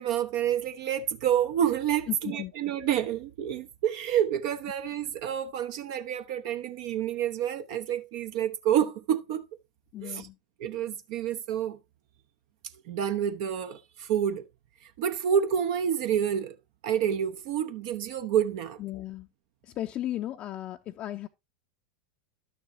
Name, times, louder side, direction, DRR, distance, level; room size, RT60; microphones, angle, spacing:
voice 1, 0.0-9.4 10.0-10.3 10.6-11.8 12.9-14.4 14.8-16.6 16.8-18.8, right 9 dB, 50° right, 0.7 m, -28 dB
voice 2, 2.1-2.5 9.9-10.4 18.8-19.3 19.6-21.3, left 13 dB, 35° left, 0.6 m, -35 dB
12.0 x 6.8 x 2.7 m
figure-of-eight pair, 85°, 3 cm